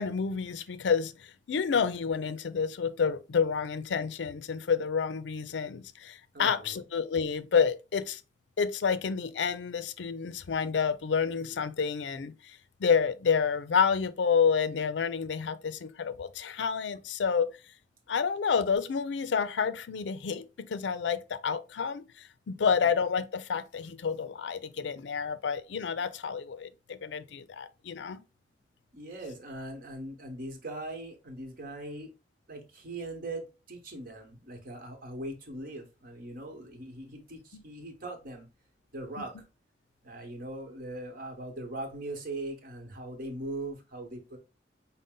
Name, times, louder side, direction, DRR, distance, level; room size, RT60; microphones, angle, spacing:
voice 1, 0.0-8.2 8.6-17.5 18.1-28.2 37.5-37.6, left 6 dB, 75° left, 0.4 m, -29 dB
voice 2, 6.3-6.8 28.9-32.1 32.5-38.5 38.9-39.3 40.0-44.4, right 1 dB, 50° right, 1.1 m, -40 dB
5.2 x 2.1 x 3.7 m
head